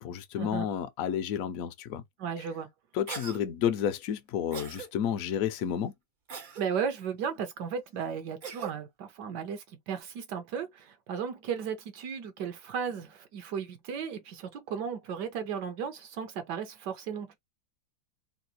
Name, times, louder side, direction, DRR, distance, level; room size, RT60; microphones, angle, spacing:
voice 1, 0.0-2.0 2.9-5.9, left 9 dB, 65° left, 0.9 m, -31 dB
voice 2, 2.2-2.7 6.6-17.4, right 7 dB, 75° right, 1.3 m, -35 dB
Cough, 3.1-3.4 4.5-4.9 6.3-6.7 8.4-8.7, right 6 dB, 55° right, 0.5 m, -40 dB
3.8 x 2.3 x 2.7 m
omnidirectional pair, 1.9 m